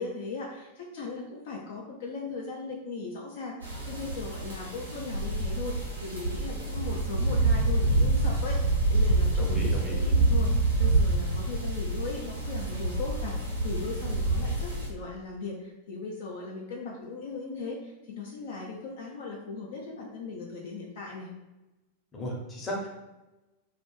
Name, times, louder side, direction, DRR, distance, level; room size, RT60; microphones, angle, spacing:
voice 1, 0.0-21.3, left 3 dB, 55° left, -2 dB, 0.4 m, -38 dB
sound 1, 3.6-14.9, right 2 dB, 80° right, 0.6 m, -27 dB
voice 2, 9.4-10.0 22.1-22.9, equal, 20° left, -2 dB, 0.8 m, -35 dB
2.3 x 2.2 x 3.1 m, 1.0 s
figure-of-eight pair, 90°, 0 cm